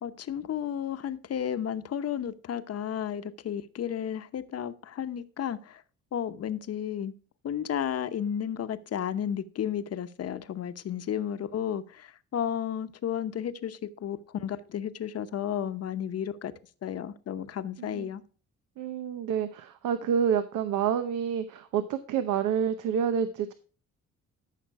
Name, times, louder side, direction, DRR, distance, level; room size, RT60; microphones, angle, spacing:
voice 1, 0.0-5.8 6.1-7.1 7.4-16.5 16.8-18.2, left 9 dB, 55° left, 0.9 m, -33 dB
voice 2, 17.8-18.1 18.8-23.5, right 8 dB, 85° right, 0.9 m, -28 dB
13.5 x 5.9 x 4.7 m
cardioid pair, 90°, 30 cm